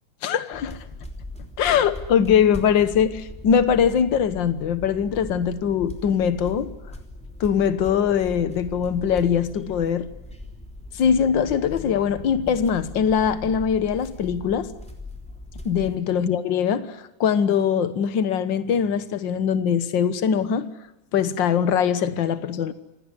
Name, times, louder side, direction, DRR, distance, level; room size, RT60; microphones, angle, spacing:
voice 1, 0.2-0.8 1.6-6.7 7.4-10.1 10.9-14.7 15.6-20.7 21.1-22.7, left 7 dB, 65° left, 13 dB, 1.1 m, -22 dB
sound 1, 0.5-16.0, left 1 dB, ahead, 2.8 m, -40 dB
27.0 x 18.0 x 9.7 m, 0.96 s
omnidirectional pair, 3.7 m